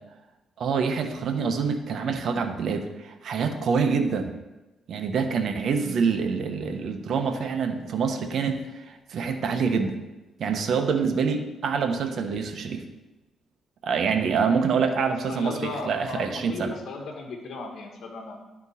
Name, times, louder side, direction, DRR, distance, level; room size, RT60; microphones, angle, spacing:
voice 1, 0.6-4.3 4.9-10.0 10.4-12.8 13.8-16.7, right 5 dB, 60° right, 6 dB, 1.0 m, -26 dB
voice 2, 15.3-18.4, left 3 dB, 70° left, 3 dB, 1.3 m, -36 dB
12.0 x 4.4 x 4.2 m, 1.1 s
cardioid pair, 90°, 0 cm